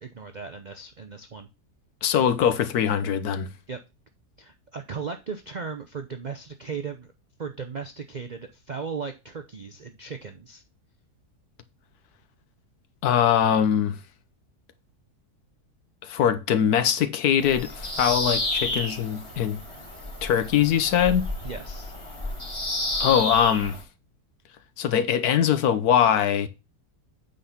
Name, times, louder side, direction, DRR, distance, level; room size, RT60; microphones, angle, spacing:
voice 1, 0.0-1.5 3.7-3.8 4.4-7.1 7.4-10.6 21.4-21.9, right 5 dB, 60° right, 0.4 m, -36 dB
voice 2, 2.0-3.5 13.0-14.0 16.0-19.6 20.2-21.3 23.0-23.8 24.8-26.5, left 9 dB, 70° left, 1.3 m, -22 dB
Bird vocalization bird call bird song, 17.4-23.8, left 1 dB, 20° left, 1.7 m, -31 dB
8.5 x 4.0 x 5.7 m
omnidirectional pair, 1.7 m